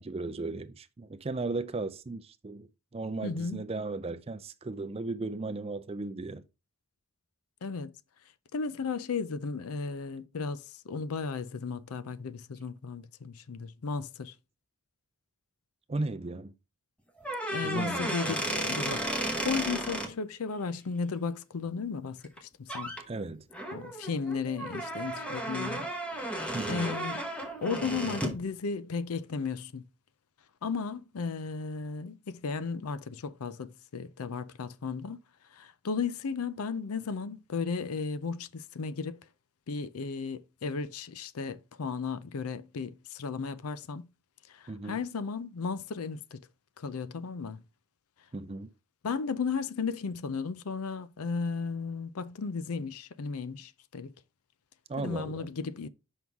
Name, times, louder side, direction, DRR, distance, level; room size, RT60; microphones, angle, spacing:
voice 1, 0.0-6.4 15.9-16.5 17.6-18.1 23.1-23.4 26.5-26.9 44.7-45.0 48.3-48.7 54.9-55.5, right 3 dB, 25° right, 0.4 m, -36 dB
voice 2, 3.2-3.6 7.6-7.9 8.5-14.3 17.5-19.1 19.4-22.9 23.7-26.3 26.7-27.2 27.6-29.8 30.6-35.2 35.5-39.2 39.7-44.1 44.5-46.4 46.8-47.6 49.0-54.1 55.0-55.9, left 5 dB, 85° left, 0.5 m, -35 dB
sound 1, 17.2-20.1 22.2-22.4 22.7-23.0 23.5-28.4, right 1 dB, 5° left, 0.9 m, -34 dB
6.1 x 5.5 x 3.5 m
head